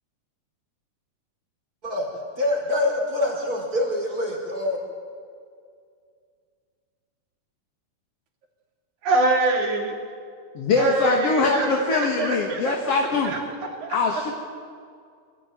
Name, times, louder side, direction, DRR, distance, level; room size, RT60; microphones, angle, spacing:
voice 1, 2.4-4.8, left 1 dB, 25° right, -2 dB, 4.4 m, -25 dB
voice 2, 9.0-10.0 10.8-13.4 13.8-14.0, right 2 dB, 65° right, 2 dB, 3.8 m, -25 dB
voice 3, 10.5-13.4 13.9-14.3, left 3 dB, 55° left, 2 dB, 2.5 m, -22 dB
25.5 x 15.5 x 9.1 m, 2.2 s
omnidirectional pair, 3.7 m